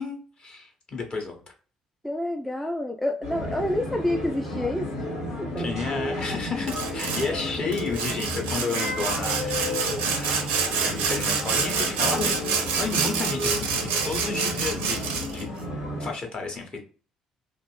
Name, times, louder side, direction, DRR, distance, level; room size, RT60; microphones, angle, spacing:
voice 1, 0.0-1.4 5.6-9.8 10.0-10.6 10.8-15.5 16.0-16.8, left 4 dB, 35° left, 0.9 m, -32 dB
voice 2, 2.0-5.1 5.4-5.7 7.3-7.5, left 1 dB, 5° left, 0.3 m, -28 dB
sound 1, 3.2-16.1, left 1 dB, 80° left, 0.8 m, -32 dB
Sawing, 6.7-7.3 7.7-15.4, right 6 dB, 65° right, 0.5 m, -27 dB
2.5 x 2.4 x 3.1 m
figure-of-eight pair, 50°, 3 cm